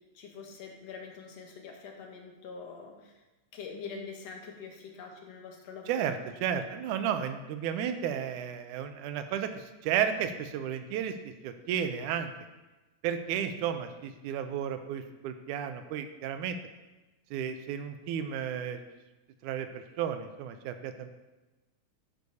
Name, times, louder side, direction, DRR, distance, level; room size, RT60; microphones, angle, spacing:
voice 1, 0.1-3.2 3.5-6.2, left 5 dB, 65° left, 2 dB, 1.9 m, -44 dB
voice 2, 6.4-11.1 11.4-12.3 13.0-16.6 17.3-18.8 19.4-21.1, right 9 dB, 80° right, 9 dB, 2.1 m, -33 dB
11.5 x 9.2 x 2.8 m, 1.1 s
omnidirectional pair, 3.6 m